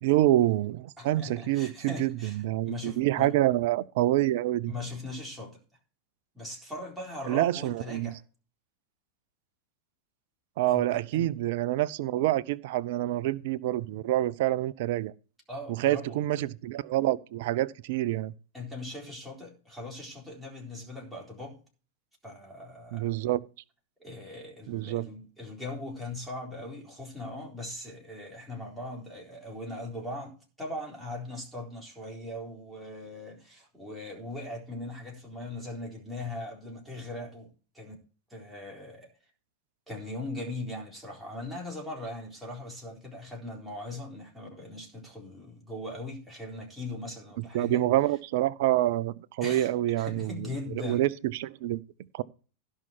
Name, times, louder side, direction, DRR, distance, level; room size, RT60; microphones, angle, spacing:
voice 1, 0.0-4.7 7.3-8.1 10.6-15.1 15.7-18.3 22.9-23.4 24.7-25.1 47.4-51.8 52.1-52.2, right 14 dB, 50° right, 0.6 m, -27 dB
voice 2, 1.0-2.4 2.6-3.3 4.7-5.6 6.3-8.2 10.7-11.4 15.5-16.2 18.5-21.6 22.2-23.1 24.0-37.5 37.7-38.0 38.3-39.1 39.9-47.8 49.4-49.7 50.0-51.1, left 2 dB, ahead, 4.0 m, -40 dB
16.5 x 5.6 x 4.4 m
figure-of-eight pair, 90°, 0 cm